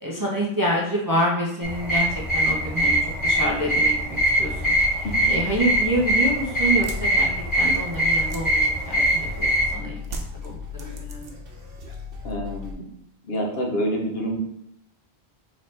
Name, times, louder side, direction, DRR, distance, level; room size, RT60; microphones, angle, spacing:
voice 1, 0.0-2.1 2.3-7.3 7.6-11.3, right 1 dB, 25° right, -4 dB, 0.5 m, -27 dB
sound 1, 1.6-9.7, right 1 dB, 20° left, 1.4 m, -22 dB
sound 2, 4.1-12.7, left 6 dB, 65° right, 1.1 m, -38 dB
sound 3, 6.8-9.4 10.0-11.6 11.9-12.5, right 3 dB, 80° right, 0.9 m, -39 dB
voice 2, 12.2-12.8 13.2-14.4, equal, 70° left, 0 dB, 1.1 m, -27 dB
4.2 x 3.1 x 3.2 m, 0.72 s
omnidirectional pair, 1.1 m